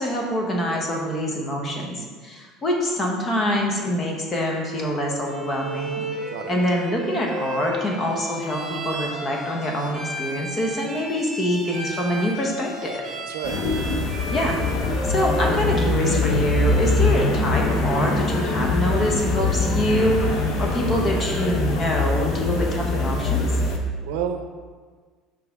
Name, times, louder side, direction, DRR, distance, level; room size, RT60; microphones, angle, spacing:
voice 1, 0.0-6.1 6.5-13.0 14.3-14.6 15.1-23.5, equal, 25° left, 0 dB, 0.9 m, -25 dB
Bowed string instrument, 5.3-17.4, right 1 dB, 20° right, 1.5 m, -34 dB
voice 2, 6.3-6.6 13.1-13.7 24.1-24.5, right 8 dB, 85° right, 6 dB, 0.6 m, -30 dB
sound 1, 13.4-23.8, left 3 dB, 50° left, 0.7 m, -23 dB
5.9 x 4.9 x 3.5 m, 1.5 s
cardioid pair, 160°, 0 cm